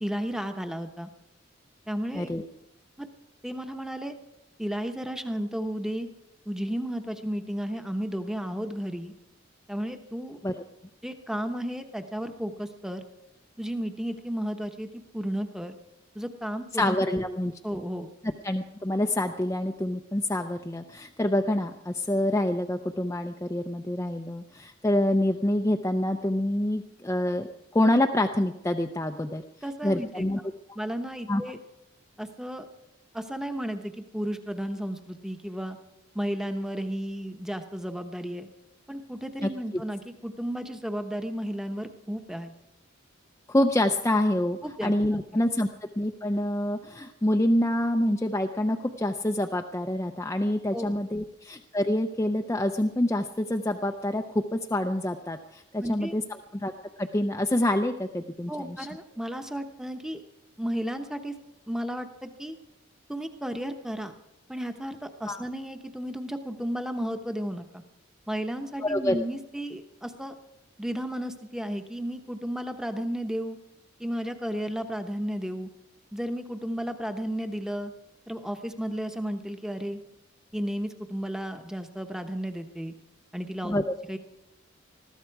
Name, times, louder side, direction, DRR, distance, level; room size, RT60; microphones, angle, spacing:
voice 1, 0.0-1.1 1.9-2.3 3.0-3.1 3.4-4.1 4.6-6.1 6.5-9.1 9.7-10.4 11.0-13.0 13.6-15.7 16.1-16.9 17.6-18.1 29.6-30.3 30.7-31.6 32.2-32.7 33.1-35.8 36.1-38.5 38.9-42.5 44.6-44.9 50.7-51.0 55.8-56.2 58.5-60.2 60.6-61.3 61.7-62.5 63.1-64.2 64.5-67.8 68.3-70.3 70.8-73.6 74.0-75.7 76.1-77.9 78.3-80.0 80.5-82.9 83.3-83.8 84.1-84.2, equal, 5° right, 7 dB, 0.9 m, -33 dB
voice 2, 2.1-2.5 10.4-10.5 16.7-17.8 18.4-27.5 27.7-29.4 29.8-30.4 31.3-31.4 39.4-39.8 43.5-56.2 56.5-56.7 57.0-58.9 65.3-65.4 68.8-69.2 83.6-83.9, left 1 dB, 15° left, 4 dB, 0.5 m, -27 dB
20.5 x 14.5 x 4.7 m, 0.90 s
head